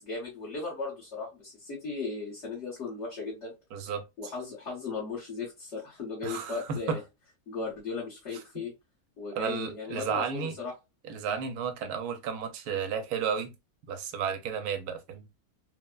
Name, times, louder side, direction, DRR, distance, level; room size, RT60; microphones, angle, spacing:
voice 1, 0.0-3.5 4.2-7.0 7.5-8.7 9.2-10.7, left 4 dB, 55° left, 1.3 m, -37 dB
voice 2, 3.7-4.0 6.2-7.0 9.4-10.6 11.0-13.5 13.9-15.3, right 6 dB, 85° right, 1.1 m, -32 dB
3.3 x 2.1 x 2.2 m
omnidirectional pair, 1.6 m